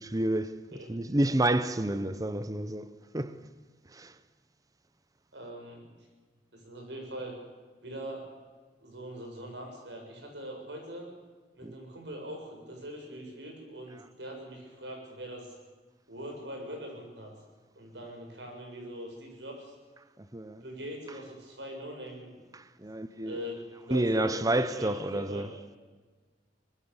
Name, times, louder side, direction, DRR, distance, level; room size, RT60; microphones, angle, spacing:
voice 1, 0.1-0.6 0.9-2.9 3.1-3.3 4.0-4.1 11.6-11.7 20.3-20.6 22.5-23.4 23.9-25.5, right 1 dB, 20° right, 0.8 m, -29 dB
voice 2, 5.3-5.9 6.5-7.3 7.8-8.3 8.8-11.1 11.5-15.5 16.1-17.3 17.8-19.7 20.6-22.5 22.8-25.4, equal, 75° right, 7.1 m, -42 dB
23.0 x 20.5 x 7.1 m
head